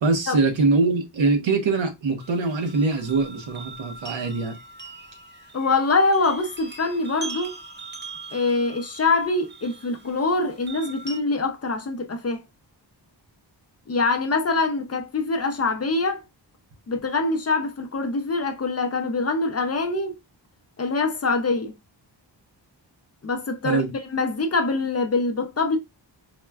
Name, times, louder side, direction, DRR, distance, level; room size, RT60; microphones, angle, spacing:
voice 1, 0.0-4.6 23.6-23.9, right 3 dB, 85° right, 0.9 m, -23 dB
sound 1, 2.2-11.2, right 3 dB, 25° right, 0.6 m, -41 dB
voice 2, 5.5-7.6 8.3-12.4 13.9-16.2 16.9-20.2 20.8-21.7 23.2-25.8, left 3 dB, 35° left, 0.5 m, -24 dB
4.2 x 2.1 x 2.2 m
wide cardioid pair, 155°, 44 cm